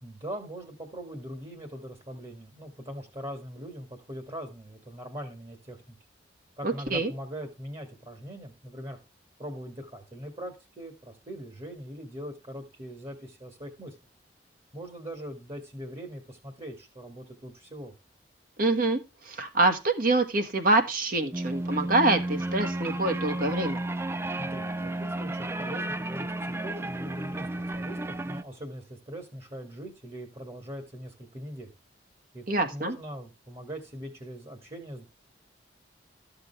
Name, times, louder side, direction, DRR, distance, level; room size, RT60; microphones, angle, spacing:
voice 1, 0.0-6.0 6.6-9.0 9.4-14.0 14.7-17.9 24.4-31.7 32.3-35.1, equal, 30° right, 6 dB, 1.9 m, -41 dB
voice 2, 6.6-7.1 18.6-19.0 19.2-23.8 32.5-33.0, right 2 dB, 50° right, 6 dB, 1.6 m, -25 dB
sound 1, 21.3-28.4, right 1 dB, 15° right, 0.4 m, -32 dB
13.0 x 6.7 x 3.3 m, 0.27 s
head